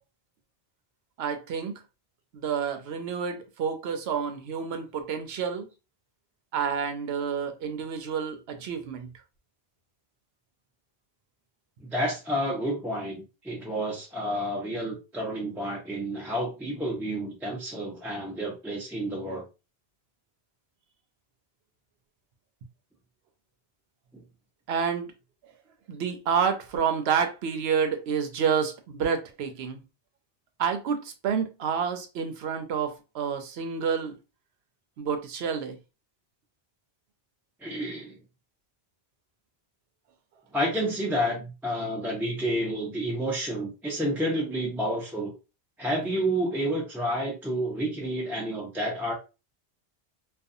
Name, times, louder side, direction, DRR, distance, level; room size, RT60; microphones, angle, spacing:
voice 1, 1.2-1.8 2.3-5.7 6.5-9.1 24.7-25.1 25.9-29.8 30.6-34.2 35.0-35.8, right 6 dB, 90° right, 0.8 m, -29 dB
voice 2, 11.8-19.4 37.6-38.2 40.5-45.3 45.8-49.1, equal, ahead, 0.5 m, -30 dB
2.5 x 2.3 x 2.6 m
omnidirectional pair, 1.0 m